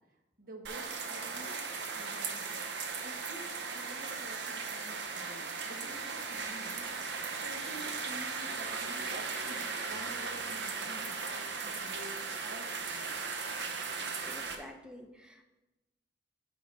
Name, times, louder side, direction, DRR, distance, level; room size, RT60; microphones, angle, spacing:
voice 1, 0.4-1.6 1.9-13.3, right 1 dB, 55° right, 2 dB, 1.2 m, -50 dB
sound 1, 0.6-14.5, right 4 dB, 85° right, 0.8 m, -37 dB
voice 2, 14.2-15.4, left 1 dB, 5° right, 4 dB, 0.7 m, -49 dB
9.3 x 5.7 x 3.3 m, 1.0 s
head